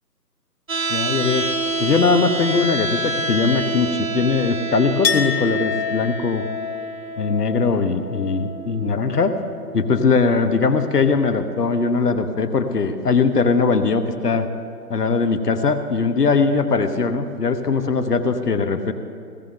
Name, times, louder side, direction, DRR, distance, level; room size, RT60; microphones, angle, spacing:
sound 1, 0.7-12.7, right 2 dB, 55° right, 1.1 m, -29 dB
voice 1, 0.9-1.5 1.8-6.4 7.2-9.3 9.7-14.5 14.9-18.9, left 4 dB, 70° left, 9 dB, 1.1 m, -20 dB
Chink clink, 5.0-10.6 10.8-11.7, left 8 dB, 85° left, 1.6 m, -30 dB
16.5 x 15.5 x 3.9 m, 2.5 s
figure-of-eight pair, 170°, 49 cm